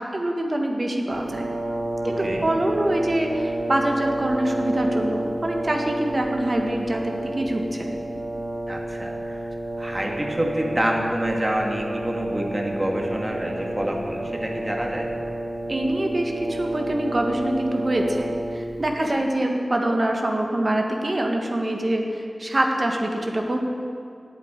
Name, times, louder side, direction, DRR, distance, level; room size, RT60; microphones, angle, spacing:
voice 1, 0.0-1.5 2.1-8.0 15.7-23.6, right 1 dB, 45° right, 2 dB, 1.6 m, -25 dB
Brass instrument, 1.1-18.9, right 1 dB, 85° right, 1.5 m, -30 dB
voice 2, 2.0-2.5 8.7-9.5 9.8-15.1, right 1 dB, 30° right, 0 dB, 1.9 m, -27 dB
8.7 x 8.2 x 8.7 m, 2.4 s
wide cardioid pair, 55°, 0 cm